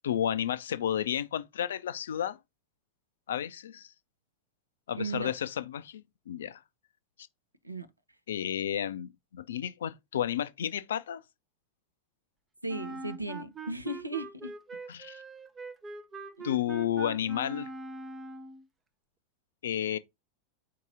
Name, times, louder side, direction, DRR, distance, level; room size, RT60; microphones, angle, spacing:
voice 1, 0.0-2.4 3.3-3.9 4.9-6.6 8.3-11.2 14.9-15.2 16.4-17.7 19.6-20.0, left 10 dB, 65° left, 0.4 m, -32 dB
voice 2, 5.0-5.3 7.6-7.9 12.6-14.5 16.4-16.5, right 2 dB, 85° right, 0.6 m, -36 dB
Wind instrument woodwind instrument, 12.7-18.6, right 3 dB, 15° right, 0.5 m, -42 dB
4.5 x 2.8 x 3.8 m
figure-of-eight pair, 90°, 0 cm